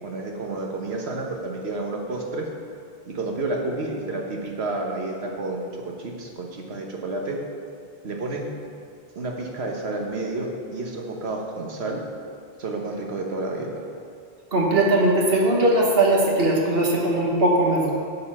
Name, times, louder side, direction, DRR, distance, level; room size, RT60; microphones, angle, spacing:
voice 1, 0.0-2.5 3.0-7.4 8.0-8.5 9.1-12.0 12.6-13.9, right 2 dB, 85° right, 1 dB, 1.4 m, -30 dB
voice 2, 14.5-17.9, right 1 dB, 70° right, -1 dB, 1.5 m, -19 dB
8.7 x 5.6 x 6.0 m, 2.3 s
omnidirectional pair, 1.0 m